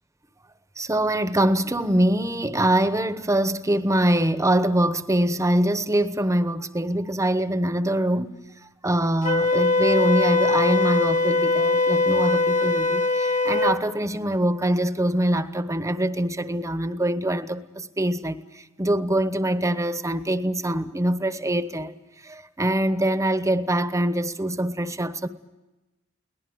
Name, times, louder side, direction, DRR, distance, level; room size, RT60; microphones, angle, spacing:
voice 1, 0.8-22.0 22.2-25.3, right 1 dB, 15° right, 1.0 m, -24 dB
Wind instrument woodwind instrument, 9.2-13.8, left 3 dB, 35° left, 1.6 m, -21 dB
23.0 x 18.5 x 9.4 m
head